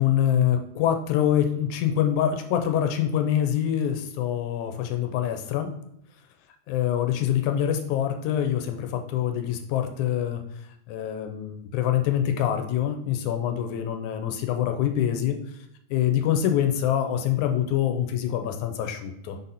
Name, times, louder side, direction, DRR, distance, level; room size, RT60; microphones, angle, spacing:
voice 1, 0.0-5.7 6.7-10.4 10.9-15.4 15.9-19.4, left 10 dB, 85° left, 6 dB, 2.1 m, -25 dB
5.8 x 4.1 x 4.0 m, 0.76 s
omnidirectional pair, 3.4 m